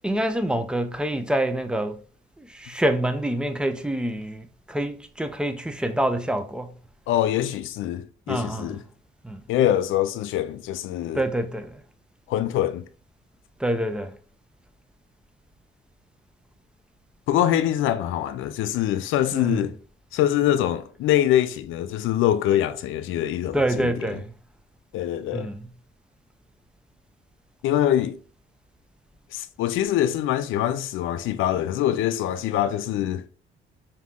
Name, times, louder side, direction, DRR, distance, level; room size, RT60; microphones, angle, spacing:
voice 1, 0.0-2.0 2.4-6.7 8.3-8.8 9.2-9.4 11.1-11.8 13.6-14.2 19.3-19.7 23.5-24.3 25.3-25.7, right 1 dB, 5° right, 0.5 m, -26 dB
voice 2, 7.1-8.8 9.5-11.2 12.3-12.9 17.3-19.7 20.1-24.1 24.9-25.5 27.6-28.2 29.3-33.3, left 12 dB, 80° left, 0.4 m, -24 dB
3.6 x 2.7 x 3.5 m
cardioid pair, 90°, 20 cm